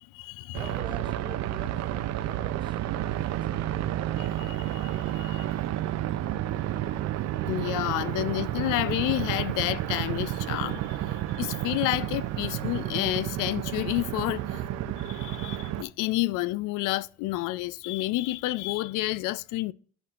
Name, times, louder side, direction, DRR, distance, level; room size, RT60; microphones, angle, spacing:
voice 1, 0.0-0.7 4.2-5.6 7.5-14.7 15.0-19.7, left 17 dB, 65° left, 0.4 m, -30 dB
voice 2, 0.5-2.8 3.2-4.0, right 2 dB, 15° right, 0.7 m, -46 dB
sound 1, 0.5-15.8, right 13 dB, 50° right, 0.6 m, -31 dB
11.0 x 4.3 x 2.4 m
supercardioid pair, 85°, 34 cm